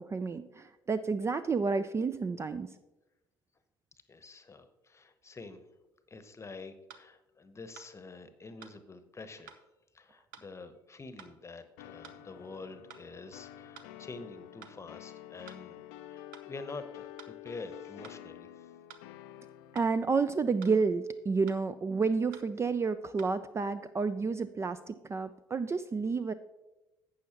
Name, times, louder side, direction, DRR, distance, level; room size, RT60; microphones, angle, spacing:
voice 1, 0.0-2.7 19.7-26.3, right 4 dB, 25° right, 12 dB, 0.4 m, -30 dB
voice 2, 4.1-5.6 6.1-9.6 9.9-15.8 16.1-17.1 17.4-18.7, left 3 dB, 25° left, 11 dB, 0.9 m, -47 dB
sound 1, 6.1-6.2 6.9-7.1 7.8-7.9 8.6-8.8 9.5-9.6 10.3-10.5 11.2-11.3 12.0-12.2 12.9-13.1 13.7-13.9 14.6-14.8 15.5-15.6 16.3-16.5 17.2-17.4 18.0-18.2 18.9-19.1 19.8-19.9 20.6-20.8 21.5-21.6 22.3-22.5 23.2-23.3, right 7 dB, 70° right, 0.7 m, -51 dB
sound 2, 11.8-20.0, left 13 dB, 65° left, 0.5 m, -49 dB
12.0 x 8.4 x 2.9 m, 1.0 s
figure-of-eight pair, 50°, 12 cm